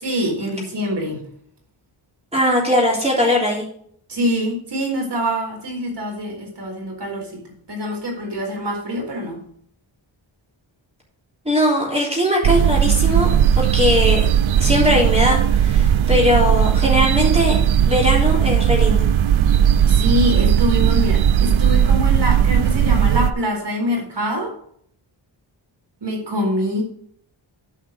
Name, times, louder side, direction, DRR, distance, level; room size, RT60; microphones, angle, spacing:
voice 1, 0.0-1.2 4.1-7.4 7.7-9.4 19.7-24.5 26.0-26.8, equal, 60° right, 0 dB, 4.2 m, -24 dB
voice 2, 2.3-3.6 11.5-13.3 13.6-14.2 14.6-17.5 17.8-19.1, left 1 dB, 15° right, -4 dB, 3.6 m, -19 dB
sound 1, 12.4-23.3, right 9 dB, 80° right, 0.7 m, -17 dB
10.0 x 5.5 x 6.5 m, 0.64 s
wide cardioid pair, 105°, 47 cm